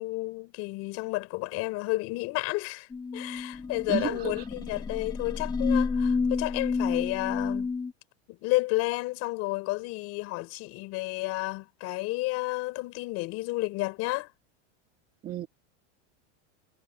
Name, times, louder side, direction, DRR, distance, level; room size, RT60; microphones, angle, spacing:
voice 1, 0.0-7.7 8.3-14.3, left 22 dB, 40° left, 5.1 m, -31 dB
sound 1, 2.9-7.9, left 4 dB, 10° left, 1.7 m, -30 dB
voice 2, 3.9-4.4 15.2-15.5, right 11 dB, 25° right, 2.6 m, -32 dB
supercardioid pair, 165°, 36 cm